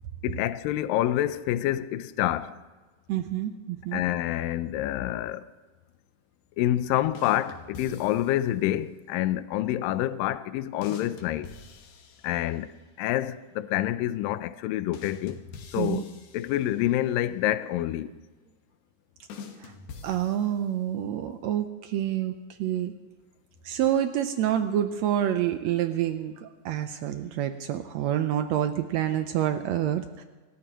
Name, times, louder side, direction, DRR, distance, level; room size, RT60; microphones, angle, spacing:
voice 1, 0.2-2.5 3.9-5.5 6.6-11.5 12.2-15.4 15.7-18.1, left 13 dB, 85° left, 2.3 m, -27 dB
voice 2, 3.1-4.0 15.8-16.0 19.6-19.7 20.0-22.3 22.6-22.9 23.6-30.2, right 11 dB, 90° right, 1.5 m, -27 dB
sound 1, 7.2-8.6 10.8-12.8 14.9-17.1 19.3-20.9, left 5 dB, 70° left, 2.8 m, -46 dB
27.5 x 14.0 x 3.0 m
omnidirectional pair, 3.9 m